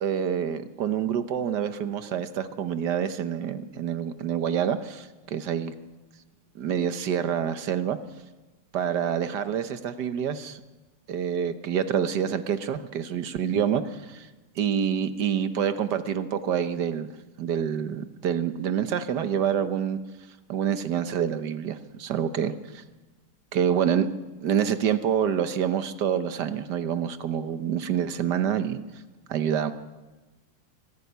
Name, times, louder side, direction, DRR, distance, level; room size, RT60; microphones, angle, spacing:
voice 1, 0.0-5.7 6.5-8.0 8.7-10.6 11.1-14.3 14.6-17.1 17.4-20.0 20.5-22.8 23.5-24.1 24.4-28.8 29.3-29.7, right 8 dB, 60° right, 11 dB, 1.4 m, -27 dB
24.0 x 12.5 x 9.4 m, 1.2 s
omnidirectional pair, 2.3 m